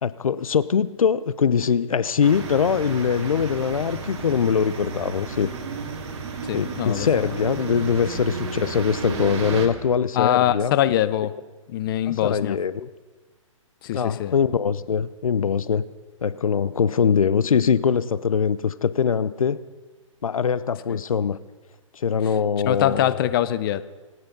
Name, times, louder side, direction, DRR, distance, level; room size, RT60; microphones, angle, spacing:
voice 1, 0.0-5.5 6.5-10.7 12.1-12.9 13.9-15.8 16.2-19.6 20.2-21.4 21.9-23.2, left 6 dB, 85° left, 16 dB, 0.6 m, -22 dB
sound 1, 2.2-9.7, right 5 dB, 50° right, 2.6 m, -33 dB
voice 2, 6.5-7.4 10.1-11.3 11.7-12.6 13.8-14.3 20.9-21.0 22.6-23.8, left 12 dB, 40° left, 14 dB, 0.7 m, -23 dB
25.5 x 9.6 x 5.3 m, 1.3 s
hypercardioid pair, 140°, 17 cm